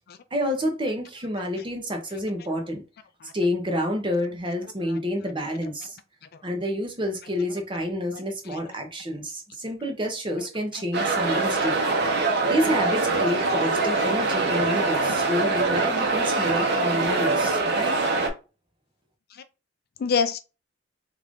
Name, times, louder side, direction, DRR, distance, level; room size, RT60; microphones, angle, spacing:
voice 1, 0.3-2.8 3.3-6.0 6.4-11.8 12.0-12.2 12.5-17.9, equal, 25° right, 0.9 m, -28 dB
voice 2, 10.7-11.1 14.0-14.1 17.2-17.3 17.8-18.0 19.3-19.4 20.0-20.4, left 5 dB, 55° left, 0.4 m, -28 dB
sound 1, 10.9-18.3, right 3 dB, 60° right, 0.8 m, -23 dB
3.3 x 2.5 x 3.6 m
head